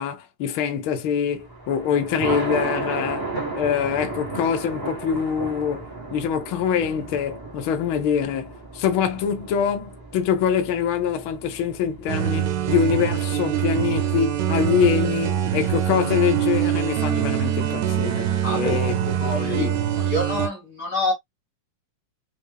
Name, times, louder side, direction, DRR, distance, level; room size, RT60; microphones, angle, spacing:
voice 1, 0.0-19.7, left 8 dB, 75° left, 1.2 m, -24 dB
Thunder, 1.4-12.7, right 2 dB, 25° right, 0.4 m, -33 dB
sound 1, 12.1-20.5, right 10 dB, 75° right, 2.1 m, -24 dB
voice 2, 18.4-18.8 19.2-19.7 20.0-21.1, left 1 dB, 55° left, 1.2 m, -26 dB
5.2 x 2.2 x 3.5 m
omnidirectional pair, 3.5 m